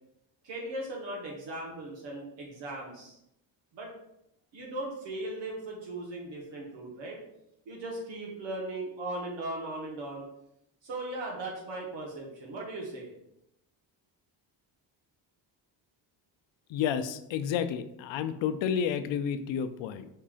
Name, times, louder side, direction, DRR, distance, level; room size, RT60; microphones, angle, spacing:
voice 1, 0.4-3.2 3.7-3.9 4.5-7.2 7.6-10.2 10.8-13.1, right 2 dB, 75° right, -2 dB, 1.3 m, -38 dB
voice 2, 16.7-20.1, left 8 dB, 75° left, 11 dB, 0.5 m, -30 dB
5.4 x 2.4 x 3.6 m, 0.80 s
cardioid pair, 115°, 45 cm